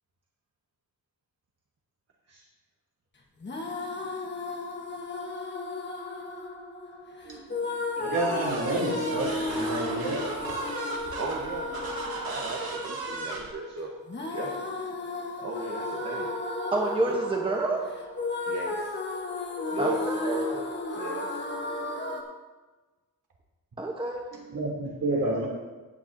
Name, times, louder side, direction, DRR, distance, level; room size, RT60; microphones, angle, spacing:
sound 1, 3.4-22.2, left 2 dB, 30° left, 1.3 m, -34 dB
voice 1, 7.7-10.5 24.3-25.5, right 2 dB, 60° right, -3 dB, 3.2 m, -30 dB
sound 2, 8.1-13.5, right 3 dB, 80° right, 2.1 m, -36 dB
voice 2, 11.2-11.7 12.2-13.9 14.3-14.5 15.4-16.3 17.1-17.2 18.5-18.9 19.7-20.6 21.0-21.4 25.0-25.3, right 2 dB, 45° right, -1 dB, 1.2 m, -35 dB
voice 3, 16.7-17.9 19.8-20.4 23.8-24.2, right 2 dB, 15° right, 0 dB, 1.0 m, -28 dB
16.0 x 9.2 x 2.7 m, 1.2 s
wide cardioid pair, 150°, 35 cm